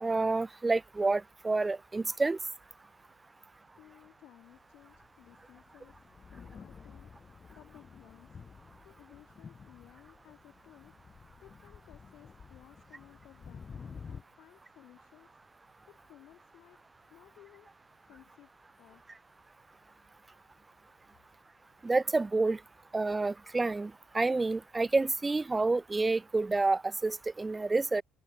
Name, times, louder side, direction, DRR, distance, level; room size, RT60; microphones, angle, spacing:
voice 1, 0.0-2.4 21.8-22.6 22.9-28.0, right 3 dB, 20° right, 0.6 m, -29 dB
voice 2, 3.8-7.1 7.5-8.4 8.8-11.1 11.4-15.4 15.9-16.8 17.1-17.7 18.1-18.5 18.8-19.1, left 14 dB, 65° left, 4.0 m, -58 dB
Thunder, 4.7-14.2, left 6 dB, 40° left, 2.2 m, -51 dB
hypercardioid pair, 60°, 0 cm